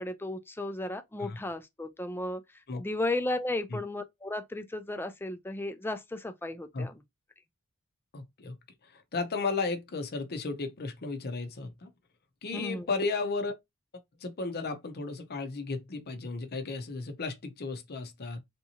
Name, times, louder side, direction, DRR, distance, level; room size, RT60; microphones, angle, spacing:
voice 1, 0.0-2.4 2.8-7.0 12.5-12.9, left 2 dB, 10° left, 0.4 m, -34 dB
voice 2, 8.1-8.5 8.8-11.9 12.4-13.5 14.2-18.4, left 3 dB, 45° left, 0.7 m, -34 dB
3.4 x 2.9 x 2.8 m
head